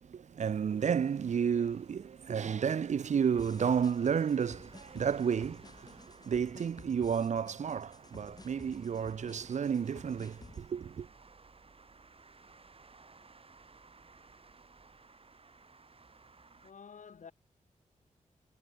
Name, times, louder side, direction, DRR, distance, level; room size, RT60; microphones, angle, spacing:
voice 1, 0.0-11.1, right 7 dB, 60° right, 0.6 m, -32 dB
sound 1, 0.7-16.7, right 4 dB, 45° right, 6.7 m, -59 dB
sound 2, 3.4-10.6, left 3 dB, 30° left, 4.6 m, -53 dB
voice 2, 16.6-17.3, left 6 dB, 70° left, 3.5 m, -50 dB
cardioid pair, 80°, 13 cm